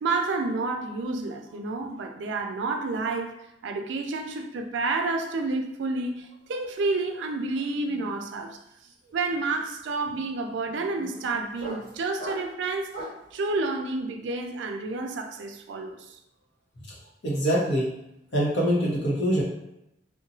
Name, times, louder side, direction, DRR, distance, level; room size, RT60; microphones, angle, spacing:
voice 1, 0.0-8.6 9.1-13.0 13.3-16.2, right 3 dB, 80° right, 0.4 m, -30 dB
sound 1, 6.6-6.8 7.1-13.3, right 1 dB, 55° left, 1.3 m, -43 dB
voice 2, 17.2-17.9 18.3-19.4, equal, 75° left, 0.9 m, -24 dB
2.9 x 2.2 x 2.6 m
head